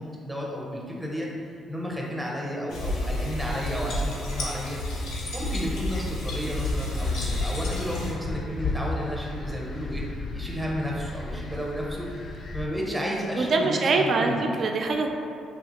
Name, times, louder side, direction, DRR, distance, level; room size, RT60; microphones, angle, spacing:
voice 1, 0.0-1.3 1.7-4.8 5.3-10.1 10.3-12.1 12.5-14.5, equal, 5° right, -3 dB, 0.6 m, -32 dB
sound 1, 2.7-8.1, left 1 dB, 90° left, 0.7 m, -30 dB
sound 2, 6.6-12.7, left 2 dB, 50° left, 0.3 m, -34 dB
voice 2, 13.4-15.1, right 3 dB, 50° right, 3 dB, 0.3 m, -24 dB
3.4 x 2.4 x 2.8 m, 2.5 s
cardioid pair, 100°, 0 cm